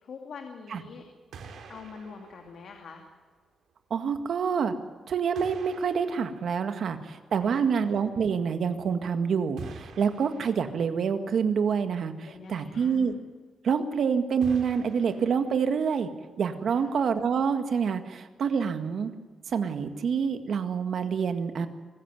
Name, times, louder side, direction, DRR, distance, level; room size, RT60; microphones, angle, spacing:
voice 1, 0.0-1.0 1.7-3.1 7.4-7.8 12.3-13.0 16.7-16.9, left 5 dB, 60° left, 3 dB, 2.6 m, -44 dB
sound 1, 1.0-1.1 1.3-3.4 4.4-4.5 5.3-7.5 9.6-11.2 14.4-16.0, right 5 dB, 90° right, 3.9 m, -47 dB
voice 2, 3.9-4.7 5.1-13.1 13.6-16.1 16.4-19.1 19.5-21.7, right 6 dB, 60° right, 8 dB, 1.9 m, -27 dB
24.0 x 15.0 x 9.3 m, 1.4 s
wide cardioid pair, 160°, 0 cm